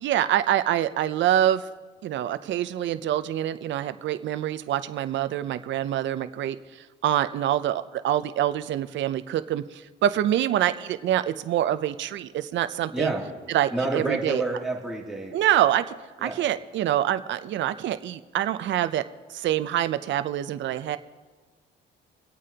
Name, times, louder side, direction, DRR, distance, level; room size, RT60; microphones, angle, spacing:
voice 1, 0.0-1.6 2.0-6.6 7.0-13.1 13.5-14.4 15.3-19.0 19.3-21.0, right 11 dB, 70° right, 11 dB, 0.5 m, -25 dB
voice 2, 12.9-13.2 13.7-15.3 16.2-16.5, right 3 dB, ahead, -3 dB, 2.6 m, -28 dB
25.5 x 8.6 x 2.9 m, 1.3 s
cardioid pair, 90°, 20 cm